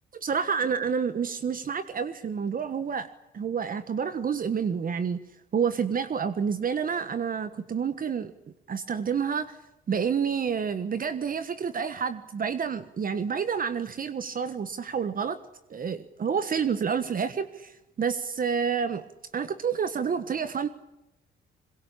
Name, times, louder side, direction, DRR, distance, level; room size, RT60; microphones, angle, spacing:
voice 1, 0.2-3.1 3.3-5.2 5.5-8.3 8.7-9.6 9.9-15.4 15.7-19.0 19.3-20.7, right 6 dB, 45° right, 12 dB, 1.4 m, -29 dB
23.0 x 22.0 x 8.7 m, 0.90 s
cardioid pair, 90°, 20 cm